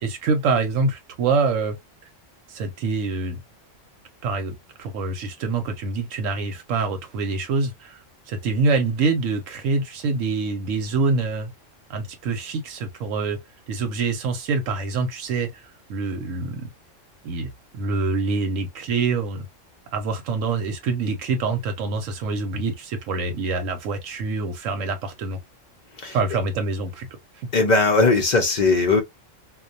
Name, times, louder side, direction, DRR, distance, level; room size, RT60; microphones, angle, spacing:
voice 1, 0.0-1.8 2.5-3.4 4.2-11.5 11.9-13.4 13.7-16.7 17.2-19.5 19.9-25.4 26.1-27.1 27.3-27.5, right 4 dB, 85° right, 1.0 m, -25 dB
voice 2, 27.5-29.0, left 3 dB, 50° left, 0.5 m, -18 dB
2.3 x 2.2 x 2.5 m
omnidirectional pair, 1.3 m